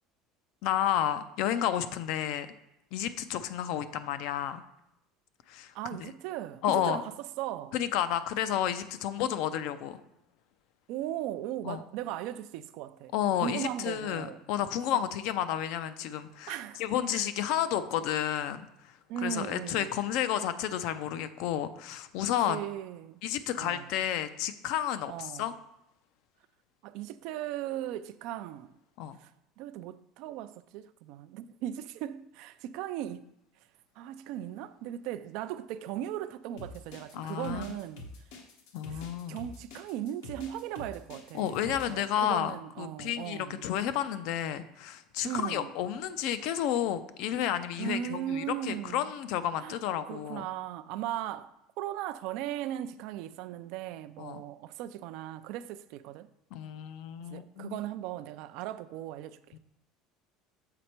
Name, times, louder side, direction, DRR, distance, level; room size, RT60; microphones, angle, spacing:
voice 1, 0.6-2.5 2.9-4.6 5.5-5.7 6.0-6.1 6.6-7.0 7.7-10.0 11.6-11.8 13.1-22.6 23.2-25.5 29.0-29.2 37.1-37.8 38.7-39.4 41.3-50.4 54.2-54.4 56.5-57.8 59.5-59.6, left 10 dB, 70° left, 0.5 m, -31 dB
voice 2, 5.7-7.1 7.4-7.7 10.9-13.1 13.4-14.4 14.9-15.0 16.5-16.8 17.1-17.3 19.1-19.9 22.5-23.2 23.6-23.9 25.1-25.5 26.8-28.7 29.2-29.3 29.6-33.3 34.0-38.0 38.9-39.0 39.3-43.7 45.2-45.7 47.8-49.1 49.6-49.7 50.0-56.3 57.2-59.4, right 11 dB, 70° right, 0.4 m, -38 dB
sound 1, 36.6-42.0, left 2 dB, 85° left, 1.1 m, -46 dB
6.8 x 4.2 x 4.4 m
supercardioid pair, 130°, 0 cm